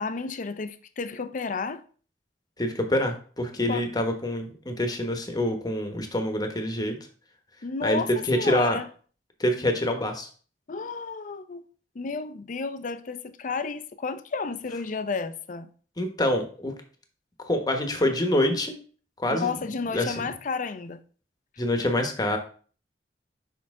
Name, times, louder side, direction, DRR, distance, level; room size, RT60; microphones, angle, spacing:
voice 1, 0.0-1.8 3.7-3.9 7.6-8.8 10.7-11.6 11.9-15.7 19.3-21.0, left 4 dB, 45° left, 0.5 m, -32 dB
voice 2, 2.6-7.0 7.8-8.8 9.4-10.3 16.0-16.7 17.5-18.7 19.2-19.5 19.9-20.2 21.6-22.4, left 1 dB, 20° left, 1.1 m, -26 dB
6.4 x 5.6 x 3.6 m
head